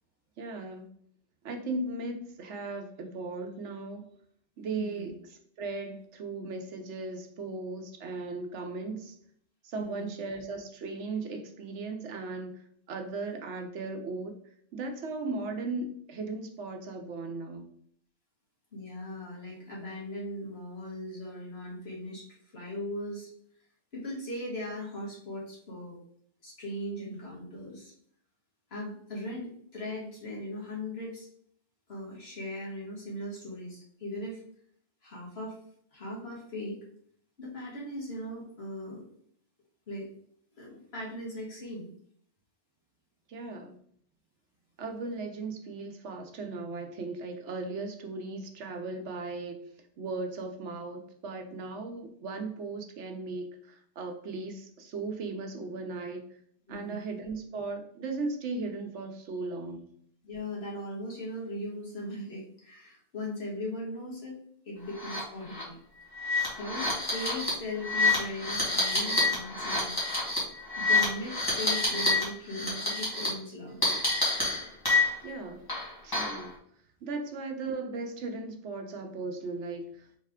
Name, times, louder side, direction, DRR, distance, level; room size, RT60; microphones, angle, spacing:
voice 1, 0.4-0.9 1.4-4.1 4.6-9.1 9.6-12.5 12.9-14.3 14.7-17.7 43.3-43.8 44.8-49.6 50.0-56.2 56.7-59.8 75.2-75.6 76.0-76.5 77.0-80.1, right 3 dB, 90° right, 4 dB, 1.1 m, -37 dB
voice 2, 4.7-5.1 9.8-10.1 18.7-22.3 22.5-23.3 23.9-26.0 26.4-27.9 28.7-31.3 31.9-34.4 35.0-35.6 35.9-36.8 37.4-39.0 39.9-40.1 40.5-41.9 56.7-57.0 60.2-64.4 64.7-65.8 66.5-69.9 70.8-73.8, left 1 dB, 65° left, -4 dB, 1.9 m, -39 dB
sound 1, 65.0-65.2 65.5-65.6 66.1-72.2 72.5-73.3 73.8-75.3 75.7-76.4, left 2 dB, 20° left, 1.6 m, -28 dB
4.1 x 3.2 x 3.6 m, 0.63 s
omnidirectional pair, 1.2 m